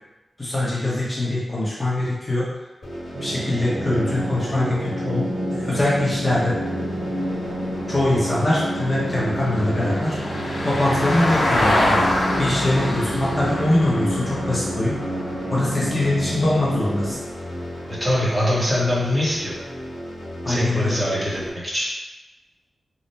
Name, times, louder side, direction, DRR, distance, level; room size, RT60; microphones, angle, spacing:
voice 1, 0.4-2.5 3.2-6.6 7.9-10.2 10.6-11.7 12.4-14.9 15.5-17.2 20.4-20.9, left 1 dB, 20° left, -7 dB, 0.7 m, -22 dB
sound 1, 2.8-21.5, equal, 45° left, 1.1 m, -35 dB
sound 2, 3.1-17.1, right 1 dB, 70° right, 0.7 m, -29 dB
Vehicle, 6.3-16.7 19.0-19.1, left 1 dB, 65° left, 0.7 m, -27 dB
voice 2, 17.9-19.6 20.5-21.9, left 1 dB, 20° right, -7 dB, 0.9 m, -23 dB
3.2 x 2.0 x 4.0 m, 1.1 s
wide cardioid pair, 155°, 0 cm